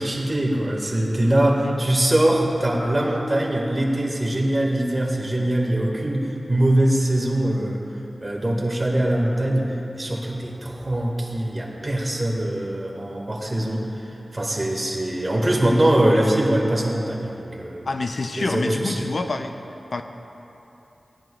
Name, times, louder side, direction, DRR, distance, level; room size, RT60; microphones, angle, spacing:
voice 1, 0.0-7.8 8.2-17.8 18.3-19.1, right 1 dB, 30° right, -1 dB, 2.1 m, -22 dB
voice 2, 17.9-19.5 19.9-20.0, left 3 dB, 70° left, 6 dB, 0.5 m, -27 dB
18.0 x 10.5 x 2.5 m, 3.0 s
wide cardioid pair, 60°, 0 cm